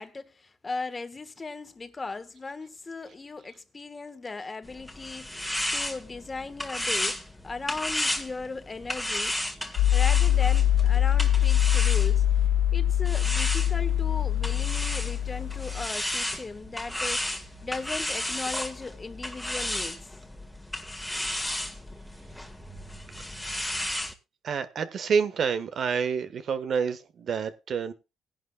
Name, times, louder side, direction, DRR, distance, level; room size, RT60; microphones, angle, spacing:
voice 1, 0.0-9.4 9.9-12.3 12.7-17.3 17.6-20.0, left 3 dB, 25° left, 1.4 m, -37 dB
sound 1, 4.6-12.5 13.0-24.1, left 1 dB, 5° left, 1.8 m, -33 dB
sound 2, 9.8-15.9, left 11 dB, 90° left, 0.5 m, -23 dB
voice 2, 24.4-27.9, right 6 dB, 60° right, 1.3 m, -28 dB
19.0 x 11.0 x 2.3 m
cardioid pair, 90°, 0 cm